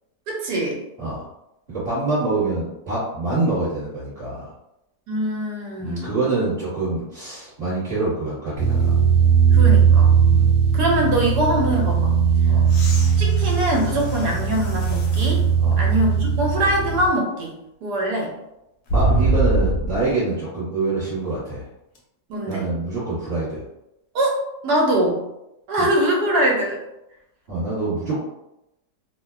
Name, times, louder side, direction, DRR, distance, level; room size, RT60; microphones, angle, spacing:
voice 1, 0.3-0.8 5.1-6.2 9.5-10.1 10.7-12.1 13.2-15.4 15.8-17.5 17.8-18.3 22.3-22.7 24.1-24.4 24.6-25.2 25.7-26.8, right 1 dB, 75° right, -1 dB, 1.2 m, -22 dB
voice 2, 1.7-4.5 5.8-8.9 10.3-10.5 12.4-12.7 15.6-15.8 18.9-21.6 22.5-23.6 25.8-25.9 27.5-28.2, right 2 dB, 40° right, -12 dB, 1.2 m, -25 dB
sound 1, 8.6-17.1, right 6 dB, 60° right, 1.0 m, -18 dB
sound 2, 12.7-15.4 16.1-16.2 18.9-20.1 22.0-22.1, right 2 dB, 70° left, 1.0 m, -24 dB
2.9 x 2.0 x 2.3 m, 0.87 s
omnidirectional pair, 1.9 m